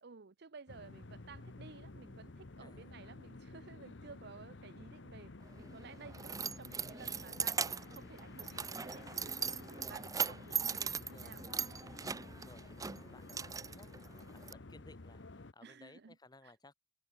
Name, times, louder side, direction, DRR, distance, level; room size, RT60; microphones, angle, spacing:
voice 1, 0.0-5.3 5.6-11.4 15.6-16.2 16.4-16.5, right 4 dB, 60° right, 0.7 m, -54 dB
sound 1, 0.7-15.5, left 2 dB, 75° left, 1.1 m, -52 dB
voice 2, 2.6-2.9 10.5-11.4 12.0-16.7, left 2 dB, 20° left, 1.9 m, -60 dB
Keys jangling, 5.5-14.5, right 6 dB, 20° right, 0.6 m, -40 dB
head